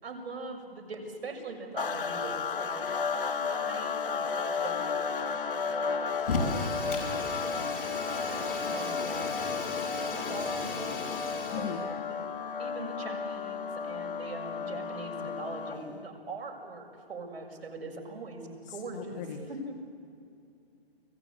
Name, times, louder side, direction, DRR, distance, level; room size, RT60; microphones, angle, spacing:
voice 1, 0.0-2.9 3.4-5.0 5.2-9.3 10.1-11.0 11.4-12.2 12.6-19.2 19.5-19.8, right 3 dB, 80° right, 3 dB, 6.4 m, -42 dB
sound 1, 1.8-16.0, left 5 dB, 60° left, 2.3 m, -33 dB
Fire, 6.2-11.8, left 3 dB, 40° left, 6.6 m, -36 dB
voice 2, 11.5-11.8 18.9-19.4, left 8 dB, 20° left, 2 dB, 1.4 m, -37 dB
30.0 x 20.5 x 8.5 m, 2.5 s
hypercardioid pair, 170°, 31 cm